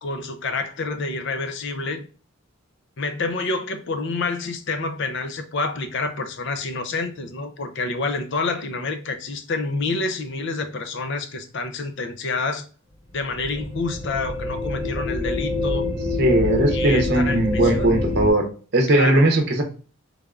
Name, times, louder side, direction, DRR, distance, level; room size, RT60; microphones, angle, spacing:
voice 1, 0.0-2.0 3.0-12.6 13.1-15.9 16.7-18.0 18.9-19.3, left 3 dB, 55° left, 0.5 m, -28 dB
sound 1, 13.1-18.3, left 2 dB, 20° left, 0.8 m, -26 dB
voice 2, 16.2-18.4 18.7-19.6, right 1 dB, 45° right, 0.7 m, -19 dB
3.5 x 3.3 x 2.4 m
head